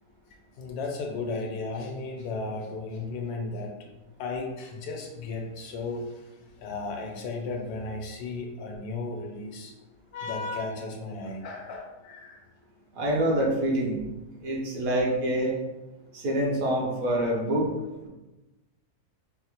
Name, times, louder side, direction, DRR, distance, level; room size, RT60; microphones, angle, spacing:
voice 1, 0.6-3.7 4.2-6.3 6.6-9.7 10.1-12.4, left 3 dB, 85° left, 2 dB, 1.2 m, -34 dB
voice 2, 12.9-14.0 14.4-15.5 16.1-17.7, right 1 dB, 65° right, -3 dB, 1.1 m, -26 dB
4.4 x 2.1 x 2.9 m, 1.1 s
omnidirectional pair, 1.7 m